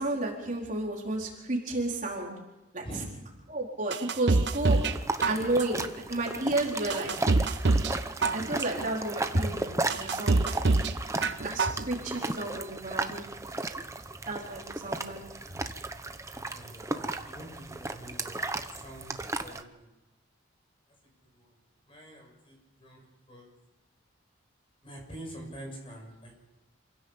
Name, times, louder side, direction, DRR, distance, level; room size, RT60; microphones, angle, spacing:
voice 1, 0.0-2.3 2.7-2.8 3.5-4.8 5.3-5.8 6.1-7.1 8.3-10.6 11.4-13.2 14.3-15.2, right 2 dB, 40° right, -1 dB, 4.1 m, -31 dB
voice 2, 2.8-3.2 11.9-12.1 16.3-18.4 18.7-19.9 21.3-21.5 21.9-23.5 24.8-26.5, right 1 dB, 25° left, 1 dB, 6.6 m, -46 dB
sound 1, 3.9-5.0 5.2-5.8 6.3-6.4 6.9-7.9 8.2-8.8 9.3-9.4 9.9-10.9 11.2-11.8 12.2-12.3, right 3 dB, 55° right, 0.8 m, -25 dB
sound 2, 4.5-19.6, right 2 dB, 15° right, 0.9 m, -35 dB
27.5 x 16.5 x 7.2 m, 1.1 s
head